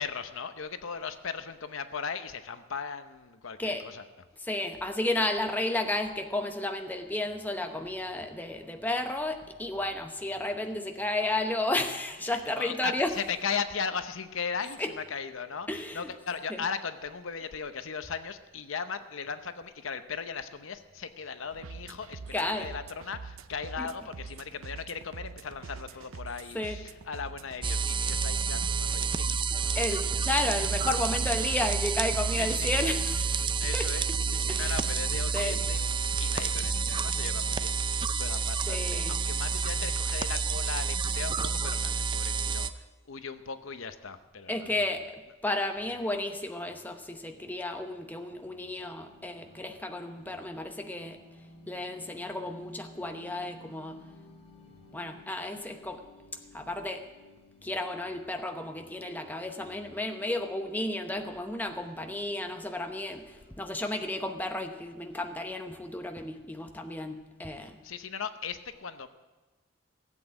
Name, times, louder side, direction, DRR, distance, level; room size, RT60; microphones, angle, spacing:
voice 1, 0.0-4.0 12.3-15.7 15.9-29.7 30.0-30.2 32.3-32.7 33.6-35.8 36.2-37.8 38.1-44.7 67.8-69.1, left 6 dB, 70° left, 10 dB, 0.8 m, -37 dB
voice 2, 4.4-13.3 14.8-15.0 15.7-16.1 16.5-16.6 22.3-22.7 23.8-23.9 26.5-26.9 29.7-33.9 34.5-34.8 35.3-35.6 38.7-39.2 44.5-51.2 51.7-54.0 54.9-56.0 56.5-57.0 57.6-67.8, left 1 dB, 10° left, 5 dB, 0.8 m, -33 dB
sound 1, 21.5-37.0, right 4 dB, 80° right, 0.6 m, -45 dB
sound 2, 27.6-42.7, right 5 dB, 25° right, 0.4 m, -29 dB
sound 3, 47.2-63.6, left 3 dB, 30° left, 2.8 m, -56 dB
16.0 x 8.2 x 8.7 m, 1.2 s
head